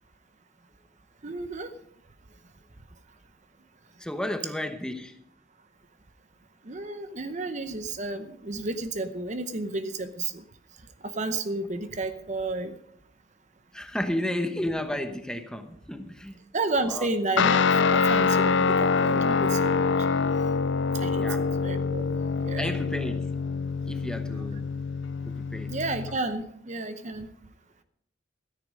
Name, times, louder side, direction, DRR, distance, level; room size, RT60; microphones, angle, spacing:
voice 1, 1.2-1.7 6.6-10.4 11.0-12.8 14.1-14.2 16.5-19.9 21.0-22.2 22.4-22.7 24.3-24.4 25.7-27.3, right 2 dB, 40° right, 10 dB, 0.8 m, -32 dB
voice 2, 4.0-5.2 13.7-16.4 16.9-17.1 21.2-21.5 22.6-23.3 23.9-24.7 25.2-25.7, left 1 dB, 5° left, 7 dB, 1.0 m, -32 dB
Guitar, 17.4-26.2, left 5 dB, 75° left, 0.5 m, -25 dB
13.5 x 9.9 x 5.2 m, 0.71 s
head